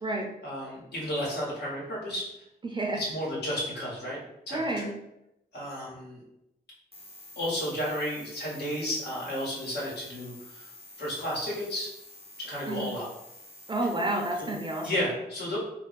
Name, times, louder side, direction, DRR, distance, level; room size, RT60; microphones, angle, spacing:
voice 1, 0.4-2.3 2.9-4.2 4.5-4.9 5.5-6.2 7.4-10.7 11.0-11.9 12.4-13.1 14.3-14.5 14.8-15.6, equal, 75° left, -5 dB, 1.4 m, -32 dB
voice 2, 2.6-3.0 4.5-4.9 12.7-12.9 13.7-14.9, right 2 dB, 25° right, 1 dB, 0.5 m, -30 dB
sound 1, 6.9-14.9, left 2 dB, 35° left, 0.7 m, -49 dB
2.6 x 2.1 x 3.9 m, 0.85 s
cardioid pair, 85°, 17 cm